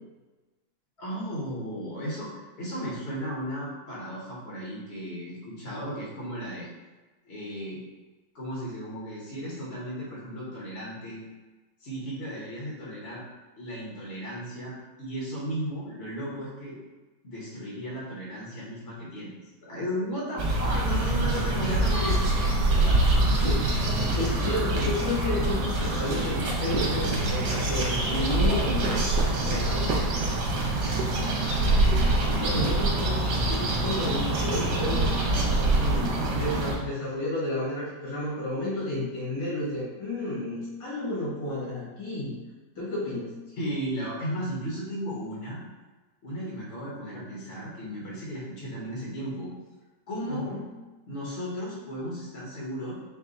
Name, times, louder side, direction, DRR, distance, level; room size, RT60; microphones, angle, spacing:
voice 1, 1.0-6.7 7.2-7.8 8.3-11.2 11.8-13.2 13.6-16.8 17.2-22.4 22.7-23.0 30.8-31.3 32.2-32.8 43.6-45.6 46.2-49.5 50.1-50.5 51.1-52.9, equal, 45° left, -6 dB, 1.0 m, -35 dB
sound 1, 20.4-36.8, right 2 dB, 65° right, 1.3 m, -25 dB
voice 2, 24.0-29.0 29.4-29.9 32.0-35.1 35.6-42.3 42.8-43.3 50.3-50.7, left 1 dB, 75° left, -8 dB, 2.4 m, -31 dB
4.7 x 2.3 x 3.9 m, 1.2 s
omnidirectional pair, 2.0 m